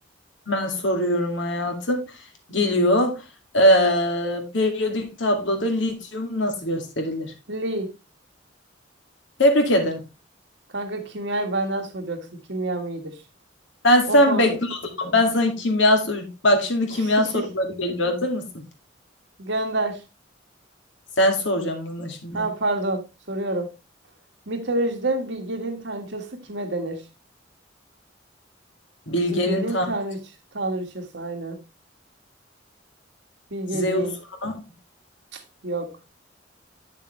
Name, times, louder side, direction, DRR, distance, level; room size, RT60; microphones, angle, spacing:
voice 1, 0.5-2.0 2.5-3.2 3.5-7.3 9.4-10.0 13.8-18.4 21.2-22.5 29.1-29.9 33.7-34.1 34.4-34.6, left 1 dB, 70° left, 2.3 m, -22 dB
voice 2, 7.5-7.9 10.7-13.1 14.1-14.6 17.0-17.5 19.4-20.0 22.3-23.7 24.5-27.0 29.3-30.2 30.5-31.6 33.5-34.2 35.3-35.9, right 2 dB, 65° right, 1.7 m, -28 dB
9.3 x 6.9 x 3.2 m
head